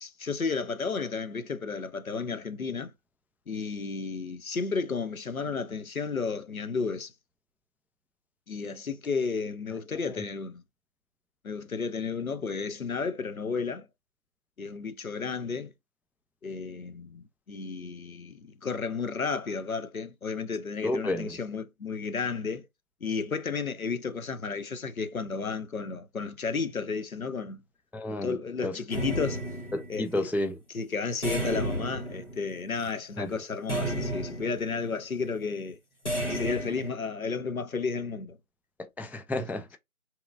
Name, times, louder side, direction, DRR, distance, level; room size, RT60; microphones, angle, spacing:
voice 1, 0.0-2.9 3.5-7.1 8.5-10.6 11.4-13.9 14.6-15.7 16.4-22.7 23.0-27.6 28.1-29.4 29.9-30.3 30.7-35.8 36.3-38.4 39.4-39.5, left 5 dB, 75° left, 0.6 m, -32 dB
voice 2, 20.8-21.4 27.9-28.3 28.6-28.8 29.7-30.6 33.2-33.4 38.8-39.8, left 1 dB, 5° right, 0.3 m, -31 dB
sound 1, 28.9-30.2 31.2-32.9 33.7-34.8 36.1-36.9, right 1 dB, 55° left, 1.3 m, -32 dB
2.8 x 2.4 x 2.2 m
figure-of-eight pair, 180°, 43 cm